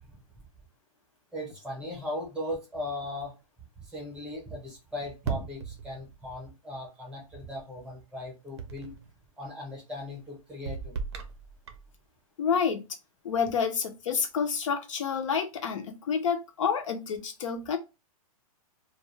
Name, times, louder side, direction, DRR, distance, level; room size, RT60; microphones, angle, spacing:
voice 1, 1.3-3.4 3.8-9.0 9.4-11.0, left 1 dB, 5° right, -2 dB, 0.7 m, -38 dB
sound 1, 5.2-6.3 8.6-9.1 10.7-11.9, right 6 dB, 45° right, 0.5 m, -37 dB
voice 2, 12.4-13.0 13.2-17.8, left 6 dB, 55° left, 6 dB, 0.4 m, -29 dB
2.4 x 2.2 x 3.1 m, 0.28 s
hypercardioid pair, 170°, 19 cm